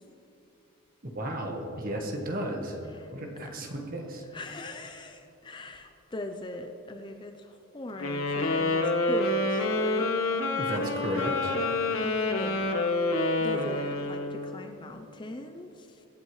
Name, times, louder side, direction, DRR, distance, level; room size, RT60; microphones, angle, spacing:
voice 1, 1.1-2.8 3.1-4.2 10.6-11.5, equal, 40° right, 2 dB, 1.3 m, -33 dB
voice 2, 4.3-10.1 11.8-16.1, left 2 dB, 20° left, 5 dB, 0.5 m, -40 dB
sound 1, 8.0-14.5, left 2 dB, 65° left, 1.0 m, -27 dB
22.5 x 8.3 x 3.2 m, 2.9 s
head